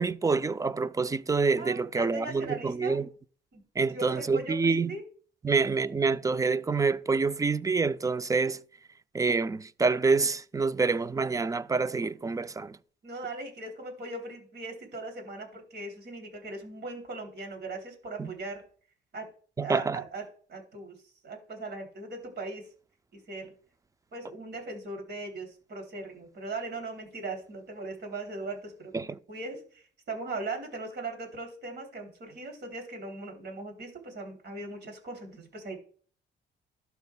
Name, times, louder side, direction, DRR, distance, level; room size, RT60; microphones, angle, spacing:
voice 1, 0.0-3.1 3.8-4.9 5.4-8.6 9.1-12.8 18.2-18.3 19.6-20.0 28.9-29.2, right 4 dB, 15° right, 0.4 m, -27 dB
voice 2, 1.6-3.0 3.5-3.6 3.9-5.1 5.5-5.6 13.0-18.6 19.1-19.3 19.6-20.2 20.5-21.0 21.2-22.7 23.1-23.5 24.1-28.9 29.3-35.8, right 3 dB, 60° right, 3.0 m, -39 dB
12.0 x 5.6 x 2.2 m
cardioid pair, 90°, 20 cm